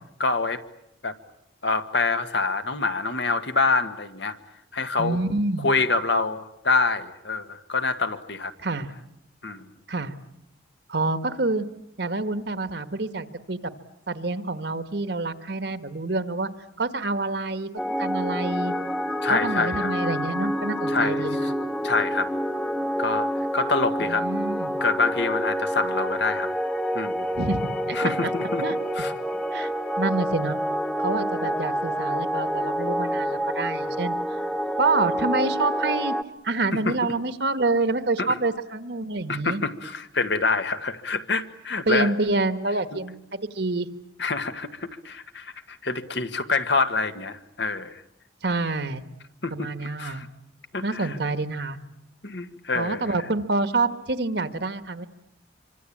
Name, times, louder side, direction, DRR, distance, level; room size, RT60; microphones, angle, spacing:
voice 1, 0.2-0.6 1.0-1.1 1.6-4.4 4.7-5.2 5.6-8.5 9.4-9.7 19.2-19.9 20.9-21.5 21.8-22.3 23.0-24.3 24.8-26.5 26.9-27.3 27.9-28.6 28.9-29.1 36.7-37.0 38.2-38.3 39.3-42.1 42.9-43.0 44.2-48.0 49.4-49.7 50.0-50.3 50.7-51.2 52.2-53.1, left 4 dB, 65° left, 9 dB, 1.6 m, -26 dB
voice 2, 5.0-5.7 8.6-8.9 9.9-10.1 10.9-11.7 12.0-13.7 14.1-16.5 16.8-17.7 18.0-18.7 19.2-21.5 24.0-24.8 27.4-28.3 28.6-28.8 29.5-29.7 30.0-30.6 31.0-34.2 34.8-36.2 36.4-39.6 41.9-43.2 43.5-43.9 48.4-49.0 49.5-50.2 50.8-51.8 52.7-55.1, right 3 dB, 60° right, 11 dB, 1.5 m, -27 dB
sound 1, 17.8-36.2, equal, 5° left, 1.0 m, -27 dB
26.5 x 25.0 x 8.6 m, 0.81 s
head